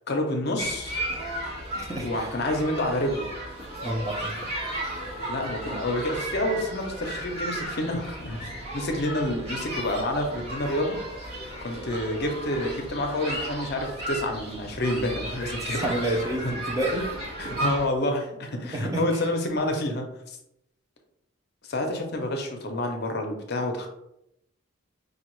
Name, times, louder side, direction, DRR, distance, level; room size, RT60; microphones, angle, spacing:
voice 1, 0.1-1.0 2.0-3.3 5.3-11.0 11.6-16.5 17.4-20.4 21.6-23.9, left 1 dB, 50° left, 3 dB, 0.6 m, -28 dB
sound 1, 0.6-17.9, right 1 dB, 80° right, 1.3 m, -34 dB
voice 2, 1.8-2.3 3.8-4.5 15.7-17.1 18.7-19.2, right 1 dB, 15° right, -1 dB, 0.5 m, -29 dB
5.0 x 2.4 x 3.0 m, 0.81 s
head